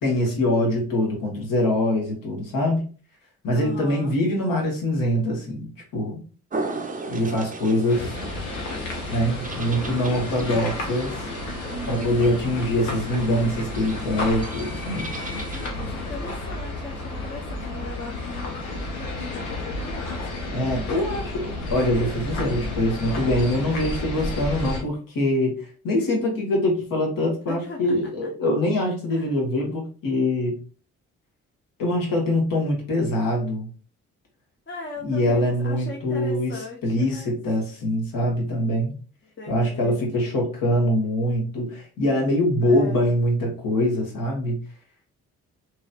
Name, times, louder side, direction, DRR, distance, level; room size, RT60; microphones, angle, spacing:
voice 1, 0.0-2.8 3.4-6.2 7.1-8.1 9.1-11.2 11.9-15.1 20.5-30.5 31.8-33.7 35.0-36.5 36.8-38.9 39.5-44.6, left 1 dB, 55° left, 0 dB, 1.3 m, -24 dB
voice 2, 3.5-4.2 15.5-20.8 27.5-28.0 28.2-28.3 29.1-29.3 34.7-37.4 39.4-40.0 42.6-43.1, left 2 dB, 30° left, -1 dB, 0.8 m, -39 dB
sound 1, 6.5-15.7, right 3 dB, 20° right, 0.6 m, -36 dB
sound 2, 7.9-24.8, left 2 dB, 90° left, 0.7 m, -32 dB
3.0 x 2.9 x 2.3 m, 0.38 s
hypercardioid pair, 40°, 39 cm